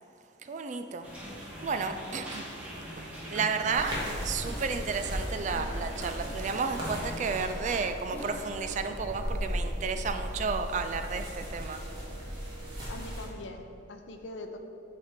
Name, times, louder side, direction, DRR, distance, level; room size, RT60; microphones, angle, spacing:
voice 1, 0.4-1.1 1.6-2.5 3.0-11.8, right 5 dB, 40° right, 8 dB, 0.3 m, -32 dB
sound 1, 1.0-7.4, equal, 5° right, 1.5 m, -42 dB
sound 2, 3.3-3.6 3.9-5.4 7.7-10.4, left 1 dB, 10° left, 0.7 m, -47 dB
sound 3, 3.7-13.3, equal, 25° right, 1.5 m, -37 dB
voice 2, 12.9-14.6, left 2 dB, 70° left, 5 dB, 0.6 m, -42 dB
8.0 x 3.4 x 5.0 m, 2.6 s
head